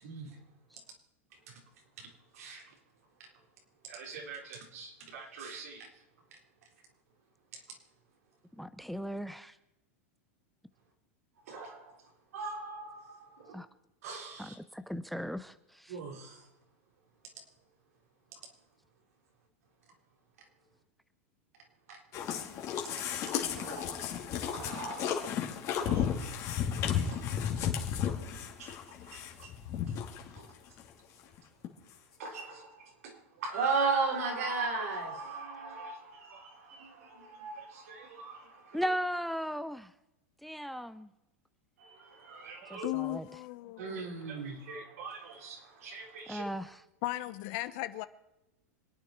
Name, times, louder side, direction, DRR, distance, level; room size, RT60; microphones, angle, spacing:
voice 1, 0.0-0.4 1.5-1.6 2.0-2.1 2.3-2.7 3.9-5.9 11.5-12.0 12.3-13.6 14.0-14.6 15.9-16.4 23.6-24.1 24.5-25.4 25.8-26.3 26.9-27.3 28.6-28.8 29.1-29.5 30.4-30.5 32.2-38.9 41.8-42.9 43.8-46.4, right 4 dB, 75° right, 3.8 m, -38 dB
voice 2, 8.6-9.6 13.5-13.7 14.4-16.0 38.7-39.9 40.4-41.1 42.7-43.2 46.3-46.8, equal, ahead, 0.5 m, -37 dB
sound 1, 22.1-30.4 30.8-30.9 31.4-31.5 31.6-31.7, left 8 dB, 40° left, 2.5 m, -33 dB
voice 3, 42.8-44.2 47.0-48.1, left 18 dB, 55° left, 1.0 m, -36 dB
26.5 x 9.3 x 4.5 m
hypercardioid pair, 125°, 8 cm